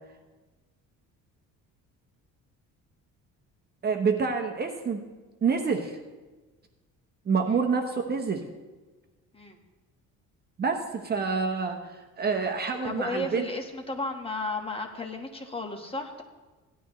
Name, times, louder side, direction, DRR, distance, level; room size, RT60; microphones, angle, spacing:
voice 1, 3.8-5.0 5.4-5.9 7.3-8.4 10.6-11.8 12.2-13.4, right 5 dB, 30° right, 4 dB, 0.9 m, -27 dB
voice 2, 12.8-16.2, left 2 dB, 15° left, 3 dB, 1.3 m, -34 dB
17.0 x 12.0 x 3.1 m, 1.3 s
cardioid pair, 135°, 32 cm